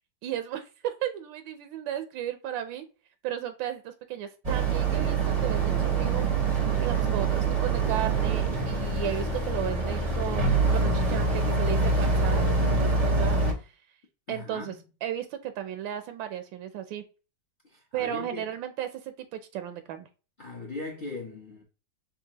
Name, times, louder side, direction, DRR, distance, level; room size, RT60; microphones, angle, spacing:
voice 1, 0.2-2.8 3.2-6.3 6.8-13.7 14.3-14.8 15.0-17.0 17.9-20.1, right 11 dB, 85° right, 1.3 m, -34 dB
Boat Water vehicle, 4.4-13.5, right 3 dB, 50° right, 0.4 m, -25 dB
voice 2, 14.3-14.8 17.7-18.5 20.4-21.6, left 3 dB, 60° left, 0.5 m, -39 dB
5.4 x 2.4 x 2.8 m
omnidirectional pair, 2.1 m